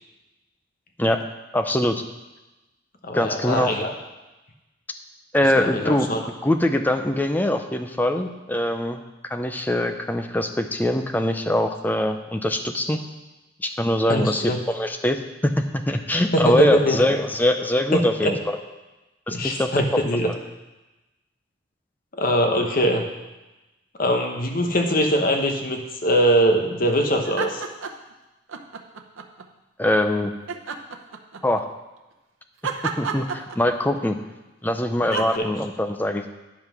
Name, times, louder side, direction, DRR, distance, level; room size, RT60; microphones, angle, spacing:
voice 1, 1.5-2.0 3.1-3.7 5.3-6.1 6.4-9.0 9.3-13.0 13.6-18.6 19.3-19.7 20.2-20.4 29.8-30.3 31.4-31.6 33.0-34.2 34.6-36.3, left 1 dB, 10° left, 6 dB, 0.5 m, -23 dB
voice 2, 3.0-3.9 5.6-6.2 14.1-14.6 16.3-17.0 17.9-18.3 19.3-20.3 22.1-23.0 24.0-27.6 35.1-35.5, equal, 45° left, 3 dB, 0.9 m, -22 dB
sound 1, 27.2-28.1 28.5-29.5 30.5-31.6 32.6-34.0 35.1-35.4, right 5 dB, 85° right, 0.8 m, -31 dB
9.9 x 5.5 x 6.0 m, 1.1 s
head